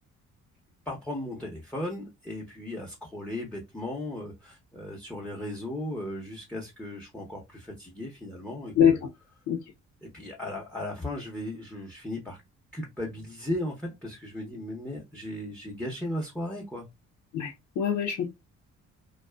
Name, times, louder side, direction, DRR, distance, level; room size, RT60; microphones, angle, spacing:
voice 1, 0.9-9.0 10.0-12.4 12.7-16.9, left 1 dB, 5° left, 0.8 m, -36 dB
voice 2, 17.3-18.3, left 8 dB, 80° left, 0.7 m, -23 dB
2.5 x 2.3 x 2.2 m
cardioid pair, 90°, 30 cm